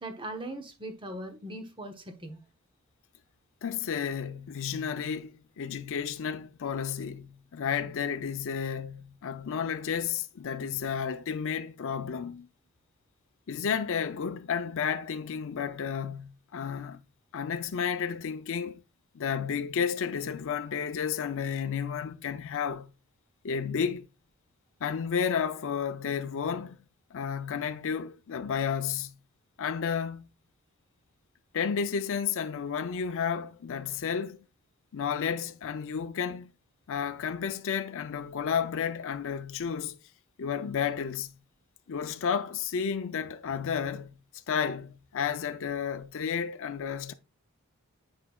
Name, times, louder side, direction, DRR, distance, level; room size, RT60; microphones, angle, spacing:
voice 1, 0.0-2.4, right 1 dB, 25° right, 1.0 m, -40 dB
voice 2, 3.6-12.5 13.5-17.0 17.3-18.8 19.1-22.9 23.4-24.1 24.8-26.8 27.1-29.1 29.6-30.3 31.5-34.4 34.9-36.5 36.9-40.0 40.4-41.3 41.9-44.2 44.5-47.1, left 7 dB, 60° left, 0.5 m, -32 dB
9.0 x 4.7 x 2.3 m
head